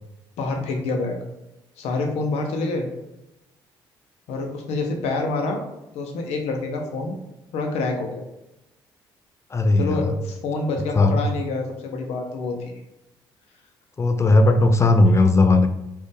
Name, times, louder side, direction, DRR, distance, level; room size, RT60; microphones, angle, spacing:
voice 1, 0.4-1.2 1.8-2.9 4.3-5.6 5.9-7.1 7.5-8.2 9.8-12.6, left 3 dB, 70° left, 3 dB, 0.8 m, -27 dB
voice 2, 9.5-10.1 10.9-11.2 14.0-15.7, left 2 dB, 25° left, 8 dB, 0.5 m, -17 dB
4.0 x 2.5 x 3.4 m, 0.93 s
hypercardioid pair, 55°, 11 cm